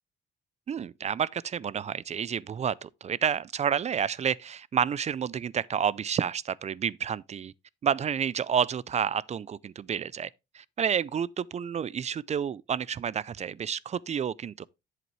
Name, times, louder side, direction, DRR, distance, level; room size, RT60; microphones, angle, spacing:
voice 1, 0.7-7.5 7.8-10.3 10.5-14.6, right 8 dB, 35° right, 0.4 m, -30 dB
8.0 x 7.6 x 3.1 m
cardioid pair, 90°, 20 cm